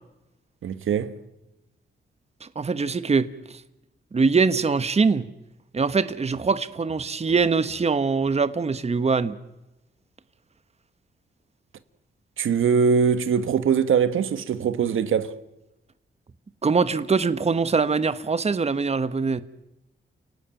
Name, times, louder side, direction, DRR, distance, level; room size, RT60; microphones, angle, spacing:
voice 1, 0.6-1.1 12.4-15.3, right 6 dB, 80° right, 1.5 m, -22 dB
voice 2, 2.4-3.3 4.1-5.3 5.7-9.3 16.6-19.4, right 4 dB, 30° right, 1.2 m, -23 dB
29.5 x 18.0 x 9.1 m
cardioid pair, 95°, 21 cm